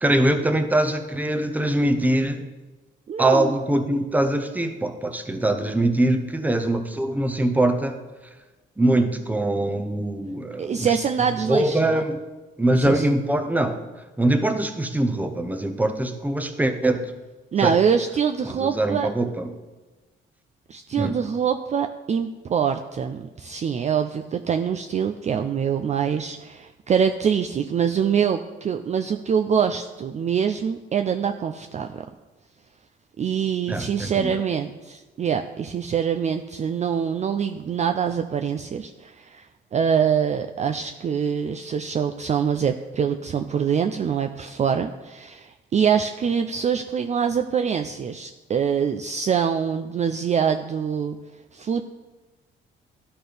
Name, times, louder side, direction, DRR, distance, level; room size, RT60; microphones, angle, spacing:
voice 1, 0.0-2.4 3.2-8.0 8.8-10.9 11.5-12.2 12.6-13.8 14.2-17.1 17.6-17.7 18.4-19.4 21.0-21.1 33.7-34.3, right 1 dB, 10° right, 7 dB, 0.7 m, -23 dB
voice 2, 3.1-3.5 10.6-12.0 12.7-13.1 17.5-19.1 20.7-32.0 33.2-39.5 39.7-51.2 51.5-51.8, right 7 dB, 35° right, 5 dB, 0.4 m, -24 dB
12.0 x 4.3 x 3.4 m, 1.2 s
cardioid pair, 90°, 20 cm